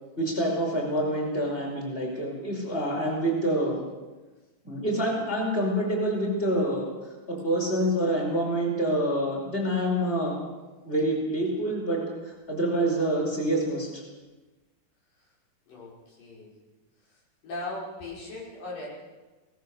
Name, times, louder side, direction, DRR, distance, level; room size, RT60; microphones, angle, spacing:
voice 1, 0.2-3.8 4.6-6.9 7.3-10.4 10.8-14.0, right 1 dB, 15° left, -1 dB, 5.0 m, -27 dB
voice 2, 15.7-16.5 17.1-18.9, left 2 dB, 90° left, -4 dB, 7.2 m, -39 dB
22.5 x 18.0 x 6.6 m, 1.2 s
omnidirectional pair, 3.7 m